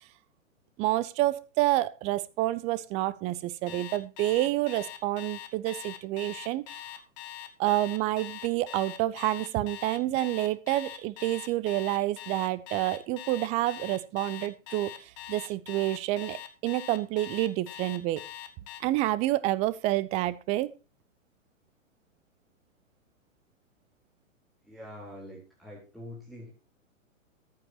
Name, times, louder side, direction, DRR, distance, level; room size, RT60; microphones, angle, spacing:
voice 1, 0.8-6.8 7.6-14.9 15.3-18.2 18.8-20.7, right 16 dB, 15° right, 18 dB, 0.6 m, -28 dB
Alarm, 3.7-18.8, left 12 dB, 30° left, 1.7 m, -42 dB
voice 2, 24.6-26.5, left 1 dB, ahead, -5 dB, 3.8 m, -45 dB
14.5 x 10.5 x 2.9 m, 0.31 s
figure-of-eight pair, 115°, 39 cm